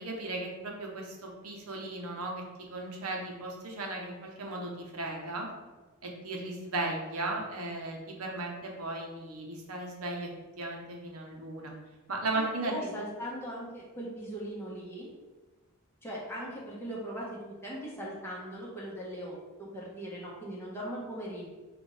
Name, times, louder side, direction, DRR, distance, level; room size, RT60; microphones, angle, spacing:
voice 1, 0.0-5.5 6.0-10.3 10.6-11.7 12.1-12.9, right 2 dB, 75° right, 0 dB, 0.9 m, -36 dB
voice 2, 12.3-15.1 16.0-21.5, equal, 10° left, -6 dB, 1.3 m, -39 dB
6.2 x 2.6 x 3.2 m, 1.2 s
head